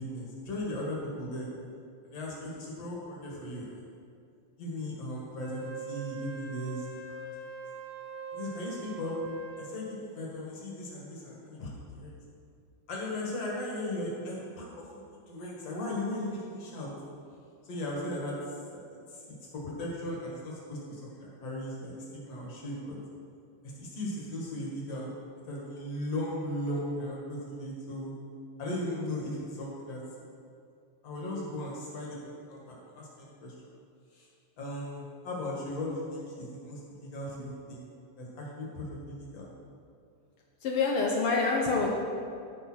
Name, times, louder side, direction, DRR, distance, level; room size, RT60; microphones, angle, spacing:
voice 1, 0.0-1.5 2.0-3.8 4.6-6.9 8.3-9.1 9.6-12.1 12.9-14.9 15.3-16.9 17.6-18.4 19.1-19.2 19.5-23.0 23.6-25.1 25.5-28.1 28.6-30.0 31.0-33.5 34.1-34.3 34.6-37.8 38.2-39.5, left 1 dB, 50° left, -3 dB, 2.7 m, -37 dB
Wind instrument woodwind instrument, 5.4-9.8, right 5 dB, 90° right, 2.8 m, -42 dB
voice 2, 40.6-41.9, left 4 dB, 90° left, -2 dB, 1.2 m, -26 dB
15.0 x 5.5 x 4.5 m, 2.4 s
omnidirectional pair, 3.8 m